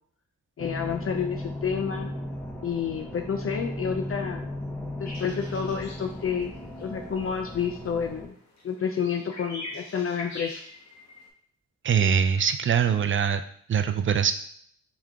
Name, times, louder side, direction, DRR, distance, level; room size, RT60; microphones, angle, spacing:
voice 1, 0.6-2.1 2.6-4.5 5.0-6.5 6.8-8.3 8.6-10.6, left 7 dB, 50° left, 4 dB, 0.5 m, -29 dB
sound 1, 0.6-8.3, left 1 dB, 5° left, 0.9 m, -36 dB
sound 2, 5.0-11.3, left 1 dB, 65° left, 1.1 m, -43 dB
voice 2, 11.8-13.4 13.7-14.3, right 7 dB, 40° right, 10 dB, 0.4 m, -23 dB
3.4 x 3.2 x 3.6 m, 0.62 s
cardioid pair, 60°, 30 cm